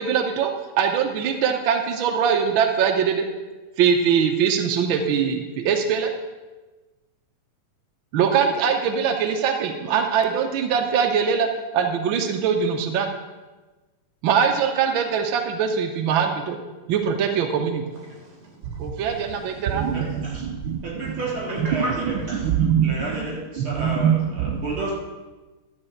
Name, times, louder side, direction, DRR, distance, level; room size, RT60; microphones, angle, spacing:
voice 1, 0.0-3.3 3.8-6.1 8.1-11.5 11.7-13.1 14.2-16.6 16.9-17.8 18.8-21.2 21.6-21.8 22.3-23.3 23.6-24.6, right 7 dB, 75° right, 1.1 m, -22 dB
voice 2, 18.1-19.9 20.2-20.3 21.1-22.2, right 1 dB, 30° right, 3.4 m, -38 dB
voice 3, 19.9-20.4 20.8-21.9 22.4-22.5 22.8-24.9, right 2 dB, 45° right, 4.9 m, -31 dB
12.0 x 5.5 x 7.7 m
omnidirectional pair, 3.3 m